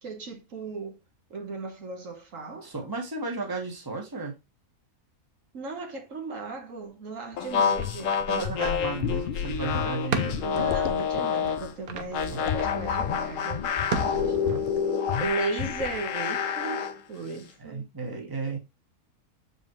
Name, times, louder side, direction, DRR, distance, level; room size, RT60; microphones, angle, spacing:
voice 1, 0.0-1.0 1.3-2.7 5.5-8.2 10.4-13.6 14.2-14.4 15.2-16.8 17.1-18.6, right 3 dB, 60° right, 1.6 m, -36 dB
voice 2, 2.6-4.3 8.3-10.3 12.3-12.4 14.5-14.6 17.6-18.6, right 3 dB, 15° right, 1.5 m, -34 dB
sound 1, 7.3-14.8 15.1-15.3 15.6-16.0, left 8 dB, 50° left, 0.7 m, -34 dB
sound 2, 7.4-11.7 12.1-17.0, left 7 dB, 65° left, 1.2 m, -28 dB
sound 3, 7.6-14.9, right 8 dB, 80° right, 1.3 m, -38 dB
7.0 x 5.3 x 3.0 m
omnidirectional pair, 1.5 m